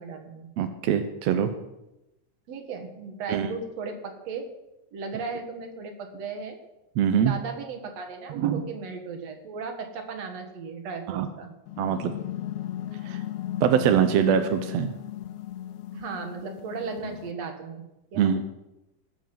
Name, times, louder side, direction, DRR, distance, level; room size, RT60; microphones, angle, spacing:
voice 1, 0.0-0.5 2.5-4.5 4.9-6.6 7.3-11.5 15.9-17.8 18.1-18.5, right 5 dB, 55° right, 5 dB, 2.6 m, -36 dB
voice 2, 0.6-1.5 3.3-3.5 7.0-7.3 8.3-8.7 11.1-11.3 11.8-12.1 13.0-13.2 13.6-14.9 18.1-18.4, right 8 dB, 75° right, 7 dB, 1.6 m, -23 dB
sound 1, 11.7-17.3, left 12 dB, 80° left, 1.7 m, -36 dB
19.5 x 7.3 x 6.0 m, 0.94 s
omnidirectional pair, 3.8 m